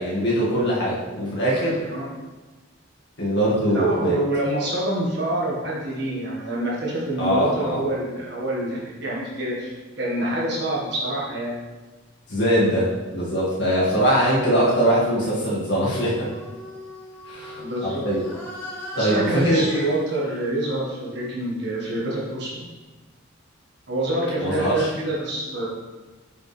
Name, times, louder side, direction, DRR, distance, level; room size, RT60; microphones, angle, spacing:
voice 1, 0.0-1.9 3.2-4.2 7.2-7.9 12.3-16.3 17.2-18.2 19.0-19.6 24.4-24.9, equal, 55° left, -7 dB, 2.0 m, -22 dB
voice 2, 3.7-11.6 17.5-18.0 18.9-22.6 23.9-25.7, right 1 dB, 55° right, -5 dB, 1.6 m, -26 dB
sound 1, 16.3-22.1, equal, 10° left, 1.3 m, -39 dB
8.0 x 5.1 x 3.3 m, 1.2 s
head